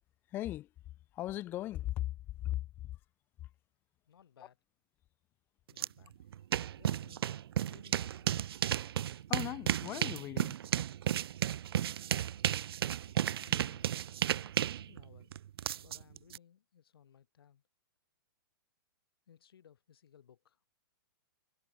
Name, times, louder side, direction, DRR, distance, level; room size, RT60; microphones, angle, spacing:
voice 1, 0.3-0.7 1.1-3.0 3.4-3.5 9.3-10.6 13.0-13.2 13.4-13.5, left 14 dB, 15° left, 0.5 m, -38 dB
voice 2, 4.1-4.6 5.7-6.2 6.7-8.5 13.2-14.2 14.6-15.4 15.7-17.6 19.3-20.6, left 9 dB, 80° left, 3.5 m, -61 dB
sound 1, 5.8-5.9 6.2-16.4, right 10 dB, 85° right, 0.4 m, -33 dB
hypercardioid pair, 165°, 12 cm